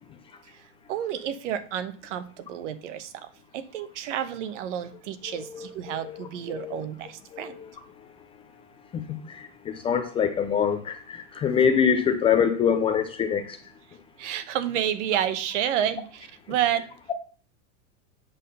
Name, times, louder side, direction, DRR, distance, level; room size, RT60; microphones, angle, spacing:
voice 1, 0.9-3.1 3.5-7.6 14.2-16.8, right 10 dB, 70° right, 11 dB, 1.1 m, -30 dB
voice 2, 5.3-6.9 7.3-7.7 8.9-13.6, left 7 dB, 15° left, 8 dB, 0.4 m, -25 dB
8.3 x 3.7 x 6.8 m, 0.41 s
supercardioid pair, 150°, 38 cm